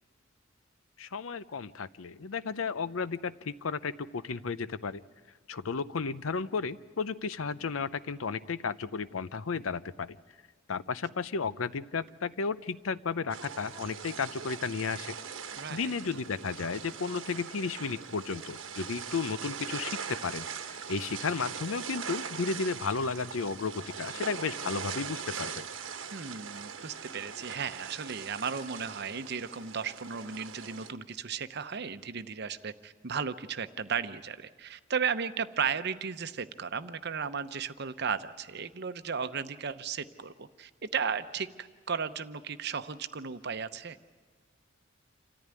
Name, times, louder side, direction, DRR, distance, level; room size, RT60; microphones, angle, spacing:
voice 1, 1.0-5.0 5.5-10.2 10.7-15.2 15.7-25.7, left 5 dB, 85° left, 15 dB, 0.6 m, -33 dB
sound 1, 13.3-30.9, right 6 dB, 75° right, 1.2 m, -41 dB
voice 2, 15.6-15.9 26.1-44.0, right 6 dB, 55° right, 11 dB, 0.8 m, -35 dB
27.5 x 14.0 x 9.7 m, 1.5 s
head